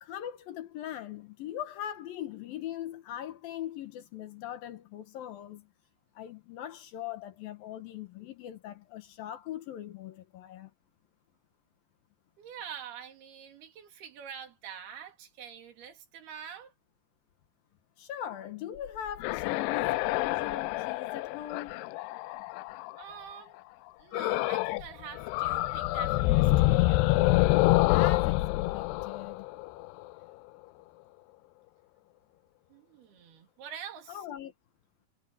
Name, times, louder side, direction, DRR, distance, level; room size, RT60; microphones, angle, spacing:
voice 1, 0.0-5.7 6.2-10.7 18.0-21.7 27.9-28.5 28.7-29.5 34.1-34.5, left 11 dB, 70° left, 2.7 m, -40 dB
voice 2, 12.4-16.7 23.0-23.6 24.0-27.0 32.7-34.3, right 8 dB, 70° right, 4.4 m, -46 dB
sound 1, 18.9-23.0 24.1-24.9 25.2-30.0, left 19 dB, 85° left, 2.7 m, -27 dB
omnidirectional pair, 4.8 m